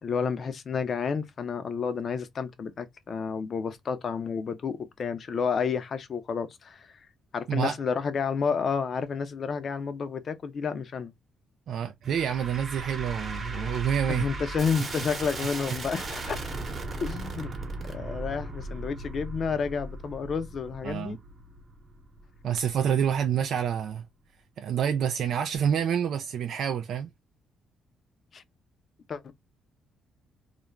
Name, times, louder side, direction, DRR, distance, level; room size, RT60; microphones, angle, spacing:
voice 1, 0.0-6.9 7.3-11.1 14.1-16.4 17.0-17.5 17.8-21.2 28.3-28.4 29.1-29.3, left 6 dB, 50° left, 0.5 m, -30 dB
voice 2, 11.7-14.3 15.7-15.8 20.8-21.2 22.4-24.0 24.6-27.1, right 8 dB, 70° right, 0.3 m, -28 dB
sound 1, 12.0-23.3, right 2 dB, 40° right, 0.9 m, -37 dB
2.4 x 2.1 x 3.0 m
cardioid pair, 90°, 0 cm